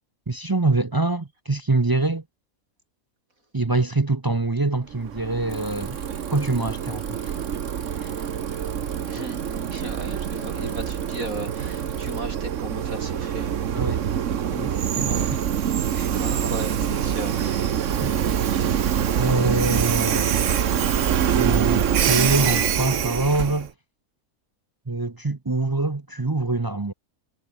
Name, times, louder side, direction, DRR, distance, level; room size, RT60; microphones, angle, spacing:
voice 1, 0.3-2.2 3.5-6.0 6.3-7.3 8.0-8.1 13.7-14.0 14.5-15.4 15.9-16.1 18.0-18.2 19.2-20.4 21.3-23.7 24.9-26.9, right 3 dB, 25° right, 0.6 m, -25 dB
Train, 4.9-23.7, right 9 dB, 65° right, 1.3 m, -25 dB
Bicycle, 5.5-12.2, right 3 dB, 45° right, 3.1 m, -45 dB
voice 2, 9.1-13.6 16.0-17.7 18.5-18.8, right 1 dB, 80° right, 8.3 m, -36 dB
omnidirectional pair, 1.4 m